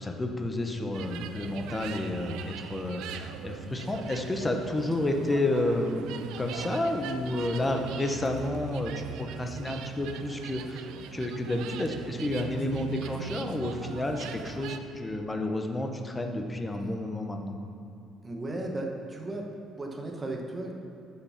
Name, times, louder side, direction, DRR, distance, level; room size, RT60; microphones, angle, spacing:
voice 1, 0.0-9.1 9.4-17.6, left 1 dB, 10° left, 4 dB, 0.6 m, -30 dB
sound 1, 0.9-14.8, right 8 dB, 85° right, 0.4 m, -41 dB
voice 2, 18.2-19.5 19.8-20.7, right 2 dB, 15° right, 1 dB, 0.9 m, -35 dB
8.5 x 5.7 x 5.7 m, 2.6 s
cardioid pair, 170°, 0 cm